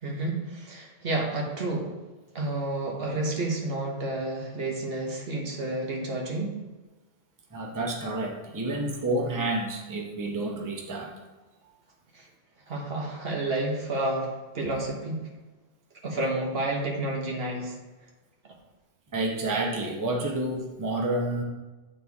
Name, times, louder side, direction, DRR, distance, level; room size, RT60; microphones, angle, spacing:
voice 1, 0.0-1.9 2.3-6.5 12.1-12.3 12.7-15.3 16.0-17.7, right 2 dB, 65° right, 0 dB, 1.3 m, -30 dB
voice 2, 7.5-11.1 19.1-21.4, right 2 dB, 20° right, -1 dB, 0.8 m, -29 dB
9.3 x 4.3 x 3.5 m, 1.2 s
omnidirectional pair, 1.1 m